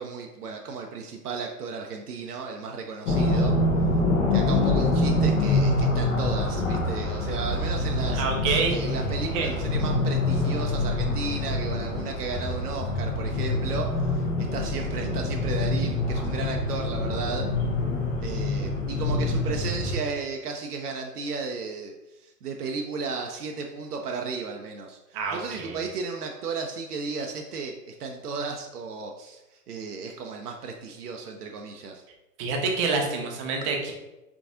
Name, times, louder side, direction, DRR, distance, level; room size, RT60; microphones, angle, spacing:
voice 1, 0.0-3.5 4.3-8.2 8.7-17.5 18.2-32.0, right 4 dB, 75° right, 2 dB, 0.6 m, -34 dB
sound 1, 3.1-20.0, left 2 dB, 50° left, 0.9 m, -25 dB
voice 2, 8.1-8.9 9.2-9.5 25.1-25.8 32.4-33.9, right 4 dB, 20° right, 1 dB, 0.4 m, -27 dB
3.8 x 3.5 x 2.5 m, 1.0 s
figure-of-eight pair, 100°, 47 cm